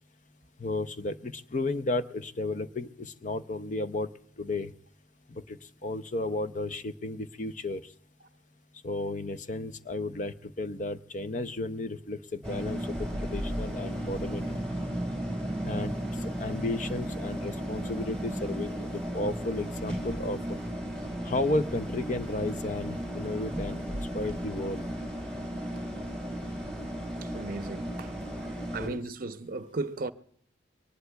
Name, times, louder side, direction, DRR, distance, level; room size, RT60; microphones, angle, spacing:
voice 1, 0.6-4.1 4.4-4.7 5.3-7.8 8.8-14.6 15.6-16.0 16.2-20.6 21.2-24.9 28.7-29.0, left 2 dB, 40° left, 0.6 m, -33 dB
sound 1, 12.4-28.9, equal, 5° left, 4.0 m, -35 dB
voice 2, 27.2-28.1 28.7-30.1, right 3 dB, 50° right, 0.6 m, -35 dB
23.5 x 19.5 x 2.3 m
head